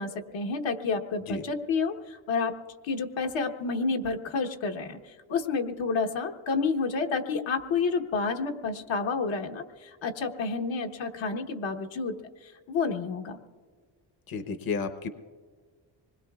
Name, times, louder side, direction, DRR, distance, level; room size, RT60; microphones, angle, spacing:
voice 1, 0.0-2.5 2.8-12.1 12.4-13.4, left 4 dB, 75° left, 3 dB, 1.2 m, -30 dB
voice 2, 14.3-15.1, left 5 dB, 50° left, 9 dB, 0.9 m, -32 dB
25.5 x 21.0 x 2.4 m, 1.5 s
cardioid pair, 80°, 46 cm